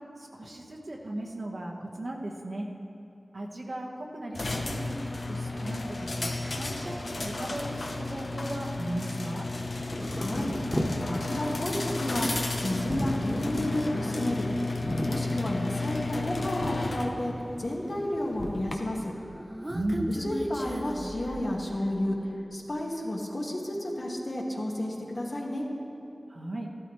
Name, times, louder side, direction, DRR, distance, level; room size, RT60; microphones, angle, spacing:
voice 1, 0.2-2.7 3.3-4.9 5.3-9.5 19.7-20.1 26.3-26.7, right 1 dB, 65° right, -1 dB, 1.3 m, -36 dB
sound 1, 4.3-18.7, left 2 dB, 80° left, 0.9 m, -33 dB
sound 2, 9.9-16.9, equal, 10° right, 1.5 m, -35 dB
voice 2, 10.1-12.3 12.6-14.5 15.1-17.3 17.6-19.1 20.1-22.2 22.5-25.7, left 1 dB, 60° left, -2 dB, 1.7 m, -31 dB
Human voice, 19.0-22.1, right 1 dB, 30° right, 0.8 m, -37 dB
14.0 x 12.5 x 3.2 m, 2.9 s
wide cardioid pair, 55°, 0 cm